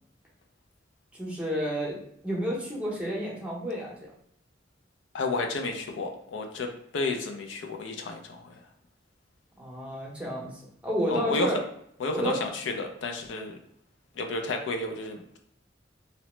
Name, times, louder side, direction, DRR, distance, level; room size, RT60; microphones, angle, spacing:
voice 1, 1.1-2.0 2.2-4.1 9.6-11.6 12.1-12.4, equal, 5° right, -4 dB, 0.7 m, -31 dB
voice 2, 5.1-8.5 11.1-11.5 12.0-13.6 14.2-15.4, left 3 dB, 75° left, 4 dB, 0.4 m, -31 dB
2.9 x 2.0 x 3.0 m, 0.71 s
head